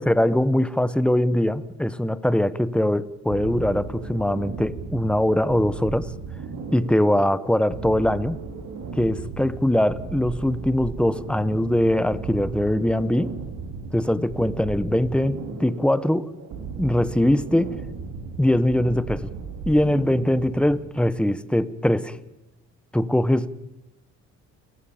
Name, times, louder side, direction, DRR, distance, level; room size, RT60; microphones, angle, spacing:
voice 1, 0.0-6.1 6.7-8.4 9.0-13.3 13.9-16.4 16.8-17.7 18.4-19.3 19.7-22.2 22.9-23.5, left 1 dB, 5° left, 1.1 m, -22 dB
sound 1, 3.3-20.9, right 5 dB, 80° right, 4.7 m, -36 dB
29.5 x 15.0 x 8.6 m
cardioid pair, 90°, 30 cm